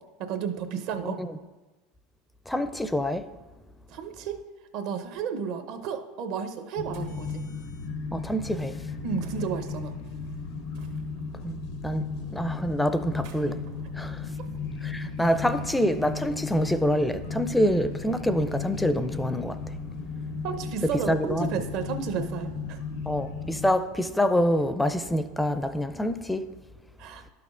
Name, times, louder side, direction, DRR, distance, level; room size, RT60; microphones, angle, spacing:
voice 1, 0.2-1.2 3.9-4.4 4.7-7.4 9.0-9.9 20.4-22.8 27.0-27.2, right 7 dB, 60° right, 0.7 m, -32 dB
voice 2, 2.5-3.2 8.1-8.8 11.4-12.1 12.3-13.6 13.9-14.3 14.8-19.6 21.1-21.5 23.1-26.4, equal, 5° left, 0.4 m, -26 dB
sound 1, 6.8-23.7, left 4 dB, 70° left, 0.7 m, -35 dB
sound 2, 6.9-7.3 9.2-9.7 10.7-11.4 13.0-15.0, right 4 dB, 80° right, 1.3 m, -52 dB
11.5 x 5.9 x 2.5 m
hypercardioid pair, 95°, 0 cm